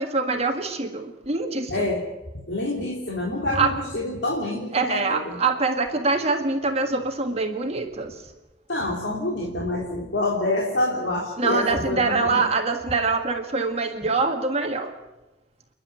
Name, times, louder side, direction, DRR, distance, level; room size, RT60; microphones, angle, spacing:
voice 1, 0.0-1.9 3.5-3.7 4.7-8.1 11.4-14.9, right 3 dB, 35° right, 4 dB, 1.8 m, -24 dB
voice 2, 1.7-2.0 2.5-5.4 8.7-12.4, left 2 dB, 75° left, -3 dB, 3.4 m, -27 dB
29.5 x 11.0 x 9.5 m, 1.1 s
head